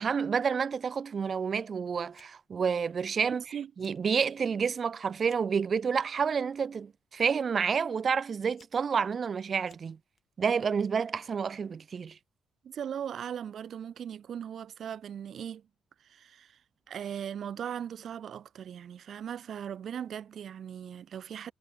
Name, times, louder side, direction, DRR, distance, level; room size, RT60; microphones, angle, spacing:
voice 1, 0.0-10.0 10.4-12.2, right 6 dB, 45° right, 0.3 m, -29 dB
Fire, 2.1-2.6 2.9-3.4 3.7-4.1 4.5-5.6 6.4-6.7 7.6-7.7 8.3-10.2, left 6 dB, 45° left, 4.6 m, -64 dB
voice 2, 12.6-15.6 16.0-16.6 16.9-21.5, right 9 dB, 60° right, 1.5 m, -39 dB
cardioid pair, 90°, 0 cm